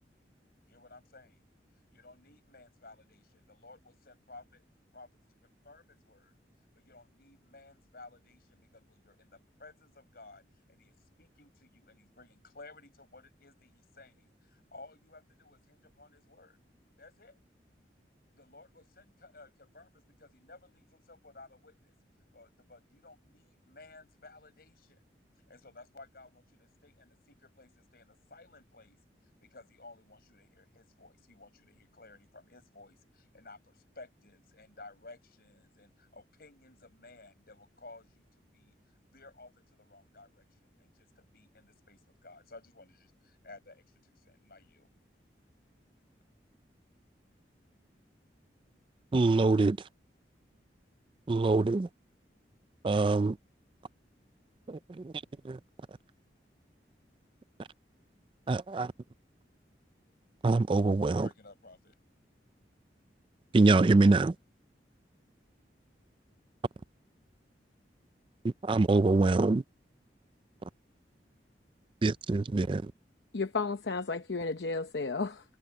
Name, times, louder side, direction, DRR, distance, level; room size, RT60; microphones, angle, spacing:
voice 1, 0.7-1.4 1.9-5.1 5.4-6.3 6.7-16.6 17.0-17.4 18.3-21.9 22.3-25.0 25.5-29.0 29.4-38.8 39.0-44.9 61.1-62.0, left 3 dB, 60° left, 5.4 m, -55 dB
voice 2, 49.1-49.8 51.3-51.9 52.8-53.4 54.7-55.1 55.4-55.6 58.5-58.9 60.4-61.3 63.5-64.3 68.4-69.6 72.0-72.9, right 3 dB, 30° right, 0.4 m, -25 dB
voice 3, 73.3-75.4, left 4 dB, 75° left, 0.8 m, -33 dB
head